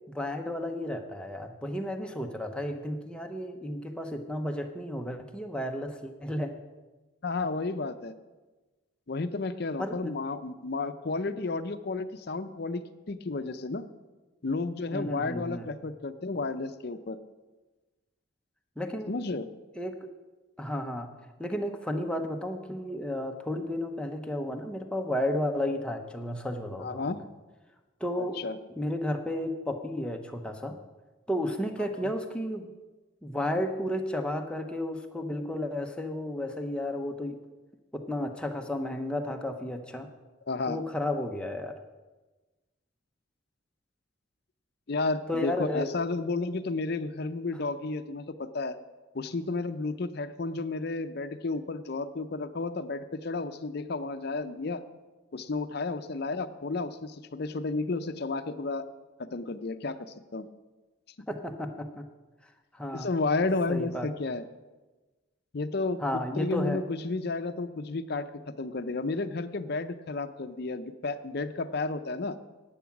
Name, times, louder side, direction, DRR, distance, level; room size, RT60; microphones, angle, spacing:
voice 1, 0.1-6.5 9.8-10.1 14.9-15.7 18.8-19.1 19.8-20.0 20.6-21.1 21.4-27.0 28.0-28.4 28.8-30.8 31.3-32.7 33.2-37.4 37.9-40.1 40.7-41.8 45.3-45.9 61.3-62.1 62.7-63.1 63.7-64.1 66.0-66.8, left 1 dB, 5° left, 4 dB, 0.7 m, -32 dB
voice 2, 7.2-8.1 9.1-13.9 14.4-17.2 19.1-19.5 26.8-27.2 28.2-28.6 32.0-32.1 40.5-40.8 44.9-48.8 49.1-54.8 55.3-58.8 59.3-60.5 62.9-64.4 65.5-68.3 68.6-72.4, left 3 dB, 50° left, 11 dB, 0.6 m, -32 dB
11.0 x 8.5 x 5.9 m, 1.2 s
head